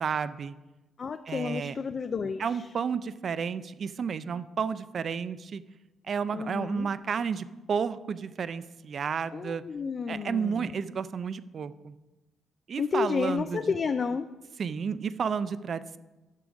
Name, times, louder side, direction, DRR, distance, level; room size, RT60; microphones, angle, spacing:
voice 1, 0.0-0.5 1.3-1.8 2.4-5.6 6.1-9.6 10.1-11.9 12.7-13.6 14.6-16.0, right 6 dB, 50° right, 15 dB, 0.4 m, -31 dB
voice 2, 1.0-2.7 6.3-6.9 9.3-10.7 12.8-14.3, left 5 dB, 45° left, 9 dB, 0.3 m, -31 dB
8.3 x 6.3 x 5.0 m, 1.1 s
cardioid pair, 90°, 0 cm